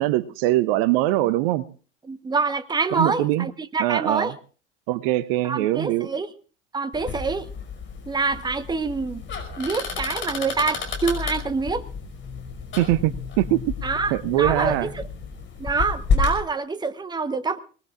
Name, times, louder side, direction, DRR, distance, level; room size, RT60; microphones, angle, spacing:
voice 1, 0.0-1.6 2.9-3.5 3.8-4.3 4.9-6.1 12.8-13.6 14.1-14.9, right 15 dB, 55° right, 18 dB, 0.8 m, -22 dB
voice 2, 2.1-4.3 5.4-6.3 6.7-7.5 8.1-9.2 9.6-11.8 13.8-15.0 15.6-17.6, right 4 dB, 10° right, 14 dB, 1.1 m, -26 dB
sound 1, 6.9-16.4, left 5 dB, 30° left, 5.3 m, -30 dB
24.0 x 19.5 x 2.5 m, 0.38 s
figure-of-eight pair, 75°, 36 cm